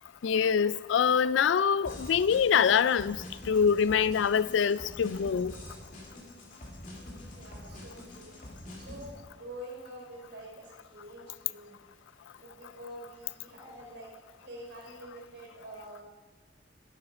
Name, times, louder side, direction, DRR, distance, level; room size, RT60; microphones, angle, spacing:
voice 1, 0.2-5.5, left 7 dB, 70° left, 0.4 m, -25 dB
sound 1, 1.8-9.1, left 1 dB, 45° left, 2.5 m, -46 dB
voice 2, 7.2-8.4 8.8-11.8 12.4-16.0, right 1 dB, 65° right, 3.7 m, -47 dB
11.5 x 11.5 x 5.0 m
head